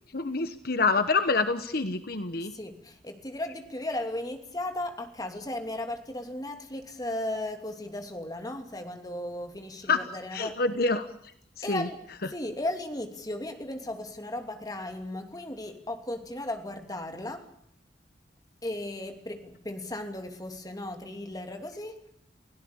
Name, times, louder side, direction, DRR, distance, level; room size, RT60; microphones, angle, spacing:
voice 1, 0.1-2.5 9.9-10.0 10.3-11.1 11.6-11.9, left 3 dB, 55° left, 10 dB, 1.2 m, -26 dB
voice 2, 2.5-10.6 11.6-17.5 18.6-22.0, left 1 dB, 20° left, 5 dB, 2.9 m, -36 dB
29.5 x 17.0 x 8.8 m, 0.70 s
head